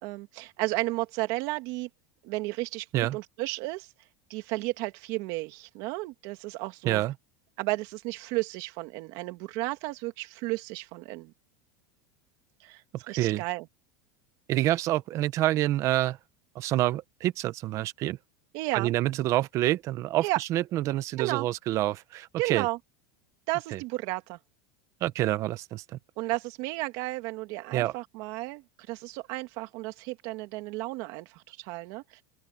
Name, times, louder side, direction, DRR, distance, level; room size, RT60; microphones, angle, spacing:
voice 1, 0.0-1.9 2.2-3.9 4.3-7.0 7.6-11.3 12.6-12.8 13.1-13.7 18.5-18.9 20.2-20.4 21.2-21.5 22.4-22.8 23.5-24.4 26.2-32.2, right 21 dB, 45° right, 2.6 m, -33 dB
voice 2, 13.1-13.4 14.5-16.2 16.5-18.2 18.7-22.7 23.7-23.8 25.0-25.8 27.7-27.9, right 15 dB, 30° right, 0.8 m, -27 dB
open air
supercardioid pair, 170°, 10 cm